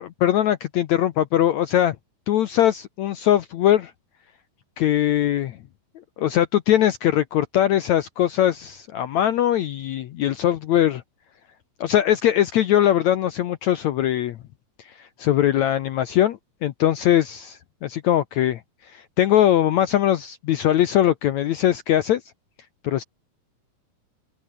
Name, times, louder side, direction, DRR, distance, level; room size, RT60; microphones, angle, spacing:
voice 1, 0.0-2.0 2.3-3.9 4.8-5.6 6.2-11.0 11.8-14.4 14.8-22.2 22.8-23.0, left 11 dB, 70° left, 1.8 m, -21 dB
open air
omnidirectional pair, 4.3 m